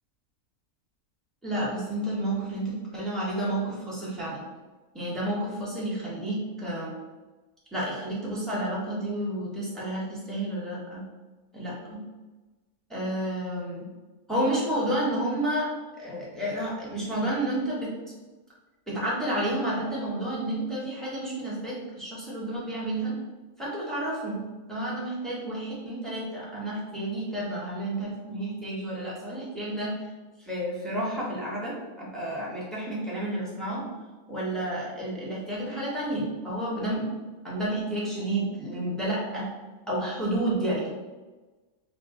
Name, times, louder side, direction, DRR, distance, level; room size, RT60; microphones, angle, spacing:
voice 1, 1.4-4.4 4.9-6.9 7.7-11.0 11.5-12.0 12.9-13.9 14.3-15.7 16.0-17.9 18.9-23.2 23.6-24.4 24.7-29.9 30.4-33.8 34.3-37.1 37.4-39.5 39.9-40.9, right 1 dB, ahead, -7 dB, 0.8 m, -30 dB
3.9 x 2.3 x 3.6 m, 1.2 s
omnidirectional pair, 1.6 m